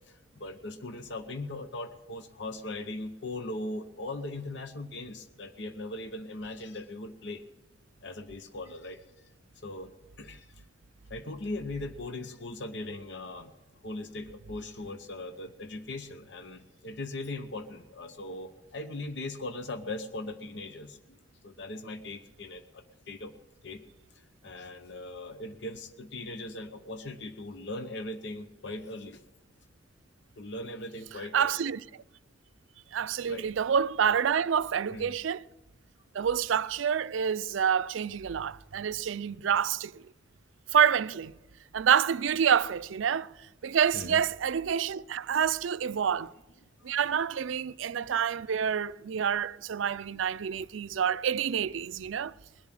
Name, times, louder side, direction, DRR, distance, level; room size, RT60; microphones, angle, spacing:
voice 1, 0.1-7.4 8.0-9.0 9.6-10.6 11.1-13.5 13.8-21.2 21.4-23.3 23.6-23.8 24.1-29.2 30.4-31.7 33.3-33.5 34.9-35.1 43.9-44.2 46.0-46.1 46.8-47.0 47.9-48.1, left 2 dB, 65° left, 0.8 m, -39 dB
voice 2, 31.3-31.8 32.9-35.4 36.1-40.0 40.7-41.3 41.7-43.3 43.6-46.3 46.8-52.3, right 8 dB, 80° right, 0.4 m, -27 dB
21.0 x 7.2 x 7.6 m
head